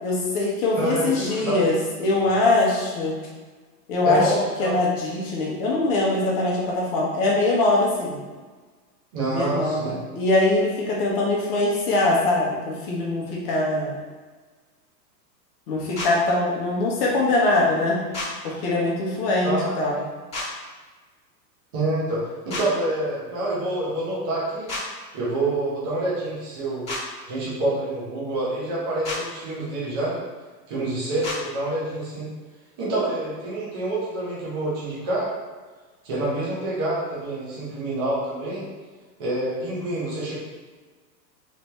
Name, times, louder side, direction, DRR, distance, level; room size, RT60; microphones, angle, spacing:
voice 1, 0.0-1.7 2.0-3.1 3.9-4.2 4.6-8.2 9.3-13.9 15.7-18.0 18.4-19.9, left 2 dB, 35° left, -3 dB, 0.9 m, -22 dB
voice 2, 0.8-1.6 2.2-2.3 4.0-4.8 9.1-10.0 19.4-20.0 21.7-24.7 25.1-26.9 27.2-30.2 30.7-32.3 32.8-35.3 36.0-38.7 39.2-40.3, right 2 dB, 15° right, -8 dB, 0.4 m, -27 dB
sound 1, 16.0-16.1 18.1-18.3 20.3-20.5 22.5-22.7 24.7-24.8 26.9-27.0 29.0-29.2 31.2-31.4, left 2 dB, 15° left, 1.2 m, -29 dB
3.3 x 2.6 x 3.2 m, 1.4 s
hypercardioid pair, 145°, 50 cm